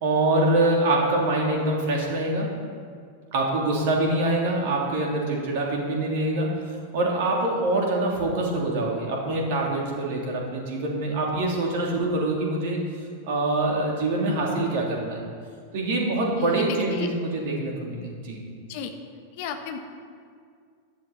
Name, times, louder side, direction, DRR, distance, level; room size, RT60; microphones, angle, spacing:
voice 1, 0.0-2.5 3.3-6.5 6.9-12.8 13.3-15.2 15.7-18.4, right 2 dB, 50° right, -1 dB, 3.0 m, -25 dB
voice 2, 16.4-17.1 18.7-18.9 19.3-19.8, left 7 dB, 50° left, 6 dB, 1.4 m, -33 dB
16.5 x 11.5 x 4.2 m, 2.1 s
figure-of-eight pair, 90°, 0 cm